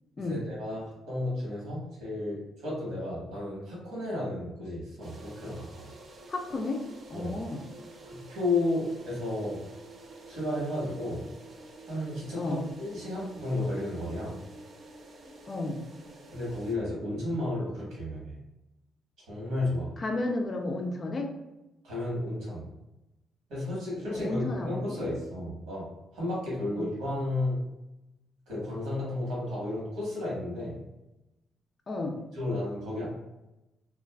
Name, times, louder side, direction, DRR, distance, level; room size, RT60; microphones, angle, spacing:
voice 1, 0.2-0.8 1.1-5.9 7.1-7.3 8.0-9.6 10.2-11.2 11.9-14.3 16.3-18.4 19.3-19.9 21.8-22.6 23.5-25.9 26.1-27.6 28.5-30.8 32.3-33.1, left 2 dB, 90° right, -6 dB, 1.3 m, -32 dB
sound 1, 5.0-16.8, right 2 dB, 50° right, 0.4 m, -49 dB
voice 2, 6.3-7.6 12.4-12.6 15.5-15.9 20.0-21.3 24.1-24.9 26.7-26.9 31.9-32.2, left 2 dB, 40° left, 3 dB, 0.4 m, -33 dB
2.4 x 2.4 x 2.2 m, 0.98 s
cardioid pair, 90°, 0 cm